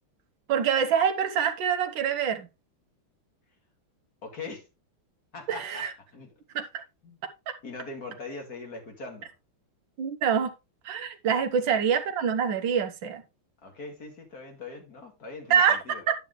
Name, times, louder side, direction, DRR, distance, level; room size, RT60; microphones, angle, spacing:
voice 1, 0.5-2.5 5.6-5.9 6.5-6.7 7.5-7.6 10.0-10.5 10.8-13.2 15.5-16.1, right 7 dB, 65° right, 1.8 m, -25 dB
voice 2, 4.2-4.7 5.3-6.4 7.0-7.2 7.6-9.3 11.7-11.8 13.6-16.0, left 3 dB, 45° left, 2.8 m, -41 dB
11.0 x 6.8 x 3.1 m
omnidirectional pair, 2.3 m